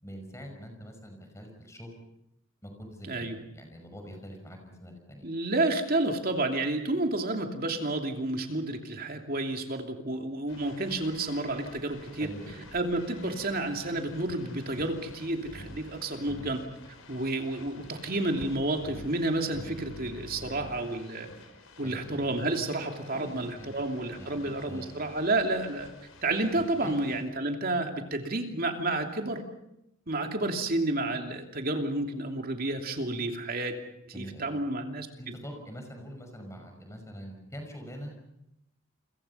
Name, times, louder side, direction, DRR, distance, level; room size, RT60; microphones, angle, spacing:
voice 1, 0.0-1.9 2.6-5.2 12.2-12.6 21.8-22.0 23.1-23.8 24.2-24.9 26.5-27.0 34.1-34.5 35.2-38.1, equal, 15° left, 4 dB, 5.7 m, -44 dB
voice 2, 3.0-3.4 5.2-12.3 12.7-16.6 17.1-21.3 21.8-25.9 26.2-29.4 30.1-33.8 34.1-35.3, right 2 dB, 45° right, 4 dB, 2.8 m, -30 dB
sound 1, 10.5-27.2, left 1 dB, 85° left, 5.0 m, -49 dB
29.5 x 23.5 x 5.6 m, 0.82 s
head